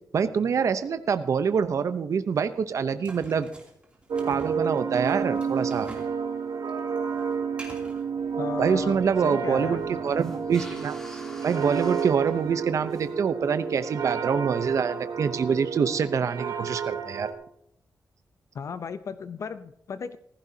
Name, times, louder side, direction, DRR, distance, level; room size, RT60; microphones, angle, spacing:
voice 1, 0.1-3.5 4.3-5.9 8.6-11.0 11.4-17.3, right 6 dB, 55° right, 11 dB, 0.7 m, -25 dB
sound 1, 3.0-6.2 6.5-8.0, right 2 dB, 20° right, 2.9 m, -45 dB
sound 2, 4.1-17.3, right 6 dB, 80° right, 1.9 m, -31 dB
sound 3, 8.2-13.1, equal, 10° left, 3.0 m, -47 dB
voice 2, 8.4-9.9 18.5-20.2, left 6 dB, 55° left, 12 dB, 0.6 m, -35 dB
15.5 x 15.0 x 2.8 m, 0.70 s
wide cardioid pair, 150°, 6 cm